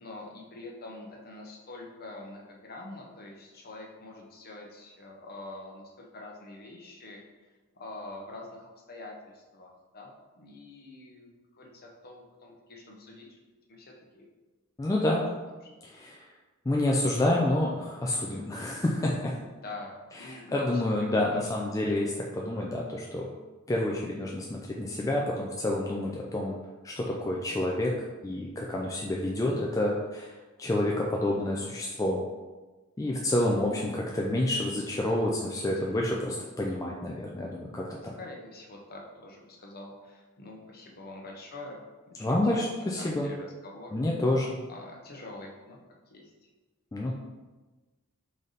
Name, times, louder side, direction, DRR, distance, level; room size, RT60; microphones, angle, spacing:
voice 1, 0.0-7.2 7.7-13.3 13.7-14.3 15.6-15.7 18.1-18.4 19.4-21.2 35.0-36.1 38.0-42.7 43.0-44.0 44.7-45.8 46.1-46.3, left 2 dB, 45° left, 0 dB, 0.8 m, -45 dB
voice 2, 14.8-15.2 15.8-16.2 16.7-19.3 20.2-23.3 23.7-26.6 26.8-27.9 28.2-30.3 30.6-32.2 33.0-38.2 42.2-43.3 43.9-44.6 46.9-47.1, left 1 dB, 15° left, -2 dB, 0.3 m, -28 dB
4.0 x 3.3 x 3.9 m, 1.2 s
head